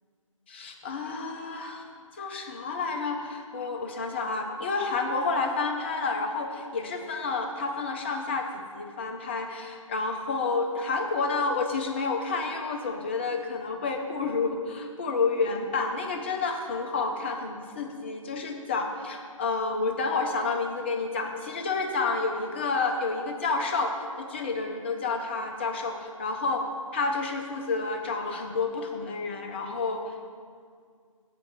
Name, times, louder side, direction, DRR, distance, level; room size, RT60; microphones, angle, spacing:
voice 1, 0.5-1.9 2.1-8.5 8.7-26.7 26.9-30.0, left 4 dB, 20° left, 3 dB, 0.6 m, -30 dB
7.5 x 5.2 x 7.1 m, 2.1 s
figure-of-eight pair, 150°, 18 cm